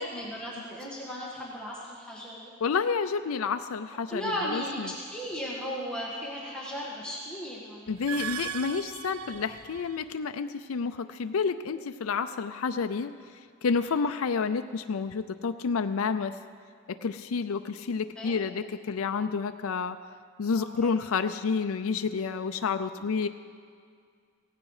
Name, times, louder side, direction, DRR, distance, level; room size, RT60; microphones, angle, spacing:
voice 1, 0.0-2.5 4.1-8.0 13.8-14.0 18.2-18.4 20.5-20.9, equal, 5° left, -5 dB, 1.7 m, -36 dB
voice 2, 2.6-4.9 7.9-13.1 13.6-16.3 16.9-20.0 20.4-23.3, left 5 dB, 80° left, 8 dB, 0.5 m, -29 dB
Laptop start, 7.9-10.1, right 8 dB, 75° right, 0.6 m, -38 dB
16.5 x 16.0 x 4.9 m, 2.1 s
head